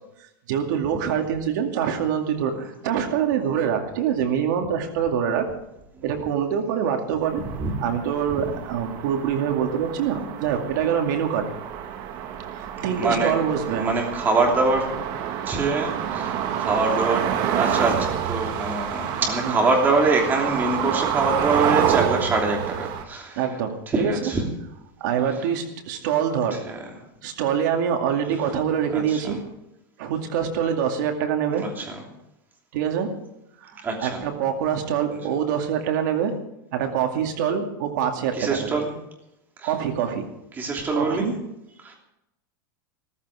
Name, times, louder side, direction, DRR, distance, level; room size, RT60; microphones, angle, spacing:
voice 1, 0.5-5.5 6.0-7.4 7.8-11.5 12.5-13.9 19.4-19.6 23.4-24.3 25.0-26.6 27.2-29.4 30.0-31.7 32.7-33.1 33.6-36.4 36.7-38.8 39.6-40.3 40.9-41.3, right 8 dB, 60° right, 4 dB, 2.3 m, -25 dB
sound 1, 7.2-23.0, right 9 dB, 40° right, 1.3 m, -28 dB
voice 2, 12.8-13.3 13.7-14.9 15.4-23.4 23.9-24.4 26.5-26.8 28.9-29.4 31.6-32.0 33.8-34.2 38.3-38.9 39.6-39.7 40.6-41.3 41.8-42.0, right 3 dB, 15° right, 1 dB, 3.0 m, -24 dB
15.0 x 14.0 x 4.9 m, 0.88 s
supercardioid pair, 160°, 11 cm